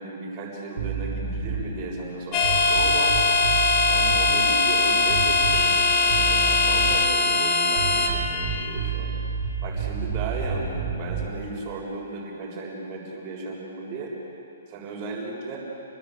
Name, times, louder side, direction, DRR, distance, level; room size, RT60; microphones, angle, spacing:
voice 1, 0.0-3.2 3.8-9.2 9.6-14.1 14.7-15.6, right 3 dB, 25° right, -3 dB, 7.1 m, -35 dB
sound 1, 0.8-1.7 2.4-4.3 5.1-5.8 6.1-7.1 7.7-11.4, right 5 dB, 50° right, 4.7 m, -30 dB
sound 2, 2.3-8.1, left 3 dB, 25° left, 2.6 m, -21 dB
29.5 x 20.5 x 8.4 m, 2.9 s
hypercardioid pair, 170°, 0 cm